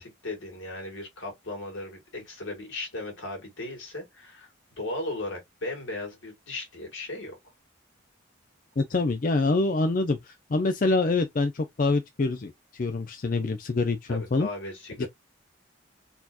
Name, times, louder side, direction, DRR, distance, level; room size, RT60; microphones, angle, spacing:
voice 1, 0.0-4.5 4.8-7.4 14.1-15.1, left 2 dB, 75° left, 2.0 m, -36 dB
voice 2, 8.8-14.5 15.0-15.1, left 3 dB, 40° left, 0.4 m, -26 dB
4.1 x 2.8 x 2.3 m
head